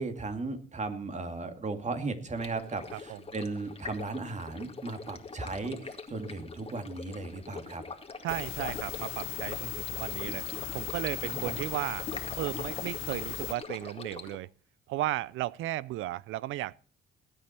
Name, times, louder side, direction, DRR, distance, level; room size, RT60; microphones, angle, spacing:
voice 1, 0.0-7.8 11.2-11.5, right 3 dB, 35° right, 2.4 m, -36 dB
Stream, 2.4-14.4, left 4 dB, 30° left, 2.1 m, -43 dB
voice 2, 8.2-10.4 10.7-12.1 12.4-14.5 14.9-16.8, right 15 dB, 85° right, 0.5 m, -35 dB
sound 1, 8.3-13.5, left 14 dB, 85° left, 0.7 m, -37 dB
19.0 x 8.8 x 4.4 m
cardioid pair, 90°, 20 cm